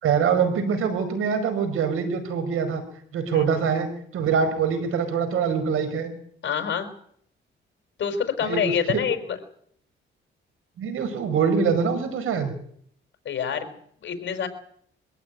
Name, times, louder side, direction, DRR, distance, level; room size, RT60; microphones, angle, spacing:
voice 1, 0.0-2.8 3.1-6.1 8.4-9.0 10.8-12.5, right 6 dB, 85° right, 9 dB, 5.1 m, -24 dB
voice 2, 6.4-6.9 8.0-9.4 13.2-14.5, left 8 dB, 60° left, 7 dB, 4.6 m, -27 dB
23.5 x 14.5 x 9.3 m, 0.65 s
cardioid pair, 95°, 21 cm